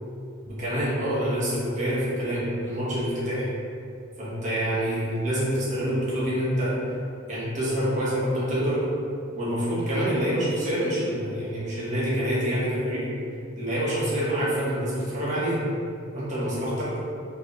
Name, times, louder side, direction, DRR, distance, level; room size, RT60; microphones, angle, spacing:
voice 1, 0.5-3.5 4.2-6.8 7.3-8.8 9.3-13.1 13.6-15.6 16.1-16.9, equal, 35° right, -8 dB, 1.3 m, -26 dB
4.6 x 3.2 x 3.2 m, 2.5 s
head